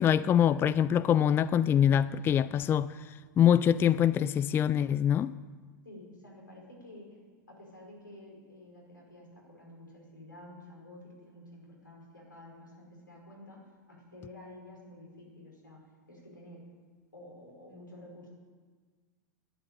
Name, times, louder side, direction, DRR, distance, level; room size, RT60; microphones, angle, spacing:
voice 1, 0.0-5.3, left 9 dB, 20° left, 0.4 m, -25 dB
voice 2, 5.8-7.2 7.5-13.6 13.9-16.6 17.1-18.3, left 1 dB, 85° left, 5.3 m, -50 dB
12.0 x 10.0 x 9.0 m
figure-of-eight pair, 90°, 10 cm